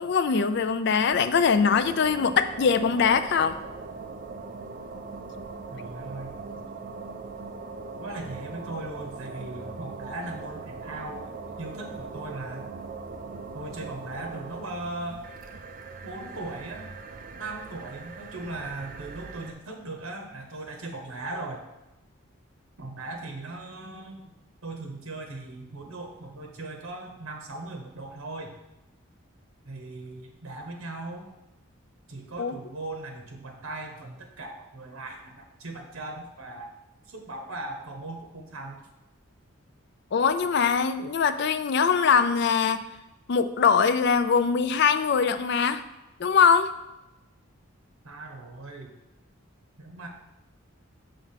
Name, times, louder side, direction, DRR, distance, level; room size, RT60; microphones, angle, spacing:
voice 1, 0.0-3.6 32.4-32.6 40.1-42.8 43.3-45.8 46.2-46.7, left 6 dB, 50° left, 11 dB, 0.4 m, -22 dB
sound 1, 1.1-19.5, right 4 dB, 40° right, 0.4 m, -40 dB
voice 2, 5.7-6.6 8.0-11.3 11.6-12.7 13.5-15.2 16.0-16.9 17.4-21.6 22.8-24.3 24.6-28.5 29.6-31.3 32.1-36.7 37.1-38.8 48.0-48.9 49.8-50.1, right 2 dB, 70° right, 2 dB, 0.9 m, -38 dB
6.1 x 3.4 x 5.7 m, 0.98 s
head